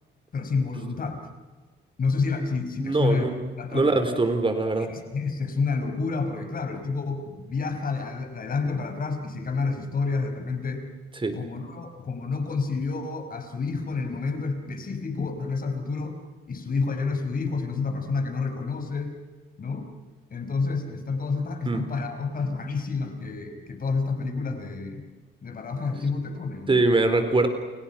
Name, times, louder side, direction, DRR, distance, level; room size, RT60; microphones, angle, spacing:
voice 1, 0.3-1.2 2.0-3.2 3.6-4.0 4.9-10.9 11.3-16.2 16.5-19.1 19.6-19.9 20.3-25.0 25.4-26.8, left 4 dB, 45° left, 6 dB, 5.3 m, -29 dB
voice 2, 2.8-3.4 3.7-4.9 11.2-11.4 21.7-21.8 26.7-27.5, right 2 dB, 25° right, 8 dB, 4.1 m, -22 dB
29.5 x 29.5 x 5.9 m, 1.4 s
cardioid pair, 90°, 20 cm